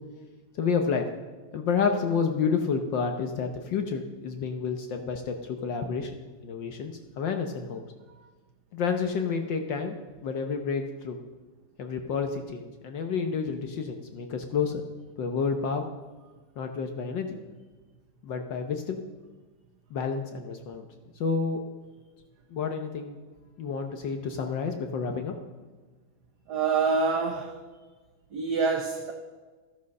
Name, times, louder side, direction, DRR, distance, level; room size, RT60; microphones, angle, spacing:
voice 1, 0.6-1.1 1.5-6.2 6.4-7.8 8.7-9.9 10.2-11.2 11.8-14.8 15.2-15.8 16.6-17.4 18.2-19.0 19.9-20.9 21.2-21.6 22.5-23.2 23.6-25.3, left 5 dB, 65° left, 5 dB, 1.5 m, -29 dB
voice 2, 26.5-27.6 28.3-29.1, right 4 dB, 60° right, 4 dB, 1.3 m, -26 dB
13.5 x 9.6 x 6.4 m, 1.3 s
omnidirectional pair, 2.4 m